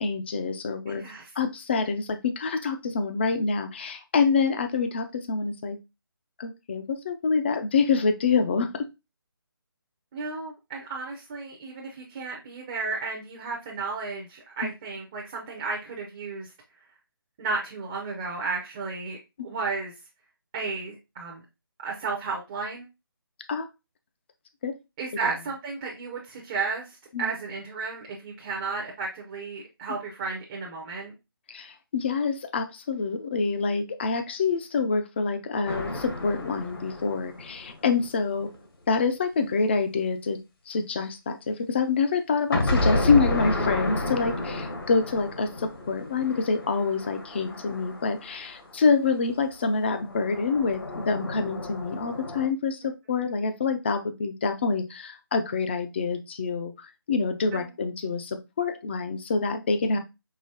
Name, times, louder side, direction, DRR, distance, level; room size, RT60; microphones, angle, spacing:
voice 1, 0.0-1.0 1.4-5.8 6.4-8.9 14.6-14.7 19.4-19.5 23.5-23.7 24.6-24.7 27.1-27.3 31.5-38.5 38.9-40.4 40.7-56.7 57.1-60.0, left 4 dB, 30° left, 8 dB, 0.5 m, -26 dB
voice 2, 0.9-1.3 10.1-16.5 17.4-19.2 19.4-19.9 20.5-21.4 21.8-22.9 25.0-31.1 57.5-57.7, right 4 dB, 20° right, -1 dB, 0.6 m, -33 dB
sound 1, 35.7-38.5 42.5-48.8 50.0-52.5, left 1 dB, 65° left, 1.3 m, -31 dB
4.8 x 2.8 x 2.7 m, 0.25 s
figure-of-eight pair, 160°, 13 cm